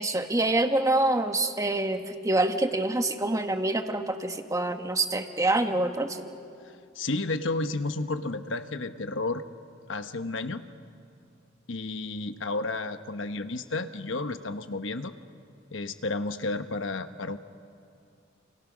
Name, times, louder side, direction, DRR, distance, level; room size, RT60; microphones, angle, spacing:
voice 1, 0.0-6.3, right 2 dB, 15° right, 6 dB, 1.3 m, -26 dB
voice 2, 6.6-9.4 9.9-10.6 11.7-15.1 15.7-17.4, left 2 dB, 75° left, 9 dB, 1.1 m, -32 dB
29.0 x 28.0 x 6.2 m, 2.4 s
head